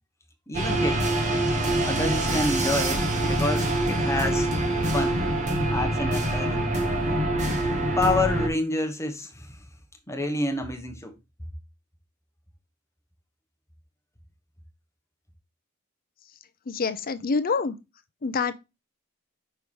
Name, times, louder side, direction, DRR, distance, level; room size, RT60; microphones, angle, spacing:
voice 1, 0.5-1.1 1.8-4.5 4.9-5.2 5.7-6.7 8.0-9.6 10.1-11.1, left 2 dB, 15° left, 1.2 m, -28 dB
sound 1, 0.5-8.5, right 1 dB, 35° right, 1.6 m, -25 dB
voice 2, 16.7-17.8 18.2-18.6, left 4 dB, 40° left, 0.6 m, -26 dB
5.7 x 4.6 x 4.6 m
head